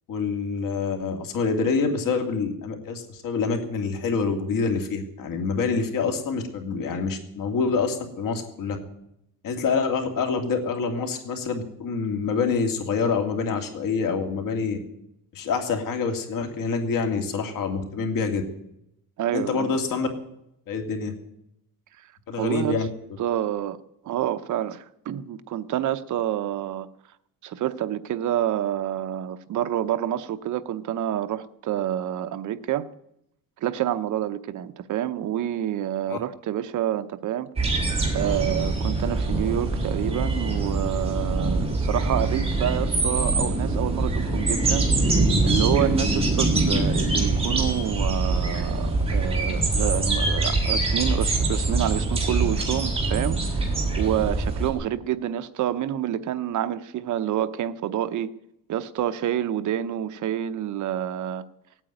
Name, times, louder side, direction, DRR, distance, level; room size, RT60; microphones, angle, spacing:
voice 1, 0.1-8.8 9.4-14.8 15.3-18.4 19.3-20.1 20.7-21.1 22.3-22.9 36.1-36.2, left 5 dB, 60° left, 5 dB, 2.5 m, -26 dB
voice 2, 19.2-19.8 22.4-22.8 23.2-23.8 24.0-26.9 27.4-32.9 33.6-37.5 38.1-53.7 54.0-58.3 58.7-61.4, right 11 dB, 55° right, 12 dB, 0.8 m, -28 dB
sound 1, 37.6-54.7, right 2 dB, 15° right, 3.1 m, -24 dB
17.0 x 9.2 x 9.0 m, 0.79 s
cardioid pair, 170°, 36 cm